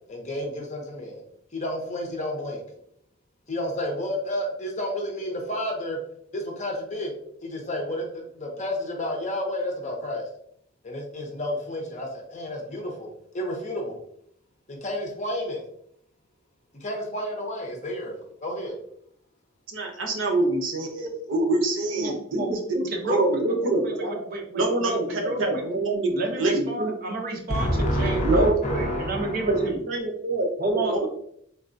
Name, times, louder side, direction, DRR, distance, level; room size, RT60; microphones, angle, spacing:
voice 1, 0.1-1.2 1.5-2.6 3.5-6.0 6.3-7.1 7.4-10.2 10.8-14.0 14.7-15.7 16.7-18.8 27.5-29.7, equal, 40° left, 1 dB, 0.7 m, -30 dB
voice 2, 19.7-22.8 23.0-24.2 24.5-26.9 28.2-28.5 29.5-31.1, right 2 dB, 90° right, 2 dB, 0.7 m, -25 dB
voice 3, 22.0-22.6 22.9-23.2 23.6-25.6 26.1-29.9 30.6-31.1, right 1 dB, 50° right, 2 dB, 0.6 m, -31 dB
3.5 x 2.2 x 2.5 m, 0.68 s
head